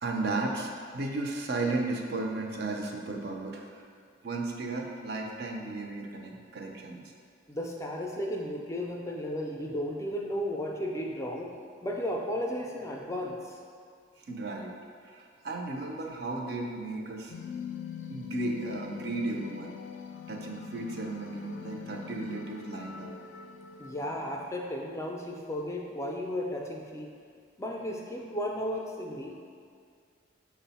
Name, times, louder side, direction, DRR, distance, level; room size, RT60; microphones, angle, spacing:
voice 1, 0.0-3.8 4.2-7.0 14.2-14.7 15.0-17.3 18.1-19.7 20.3-23.1, right 2 dB, 55° right, 1 dB, 0.4 m, -34 dB
voice 2, 7.5-11.5 11.8-13.6 23.8-27.1 27.6-29.4, equal, 15° left, 0 dB, 0.4 m, -34 dB
sound 1, 17.3-24.5, left 7 dB, 90° left, 0.3 m, -42 dB
6.0 x 2.1 x 4.1 m, 2.1 s
head